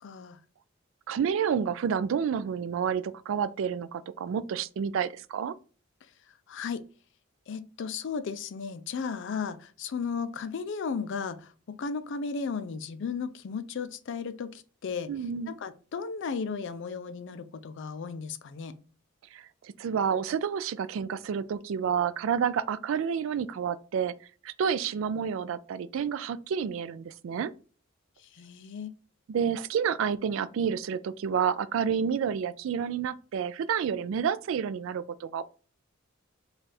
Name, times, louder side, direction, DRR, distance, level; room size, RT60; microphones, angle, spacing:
voice 1, 0.0-0.4 6.5-6.8 7.5-15.1 15.5-18.8 28.3-29.0, left 5 dB, 60° left, 0.4 m, -35 dB
voice 2, 1.1-5.5 15.1-15.5 19.3-24.1 24.4-27.5 29.3-35.4, right 7 dB, 65° right, 0.3 m, -29 dB
3.3 x 2.4 x 4.1 m
head